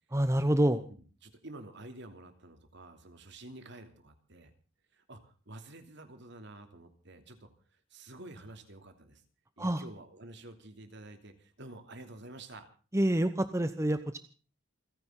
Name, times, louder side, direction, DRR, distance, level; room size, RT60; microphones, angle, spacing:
voice 1, 0.1-0.8 9.6-9.8 12.9-14.2, right 1 dB, 15° right, 10 dB, 0.9 m, -27 dB
voice 2, 1.2-4.5 4.9-9.2 9.6-12.7, right 2 dB, 60° right, 7 dB, 2.9 m, -49 dB
29.0 x 10.5 x 3.9 m, 0.39 s
head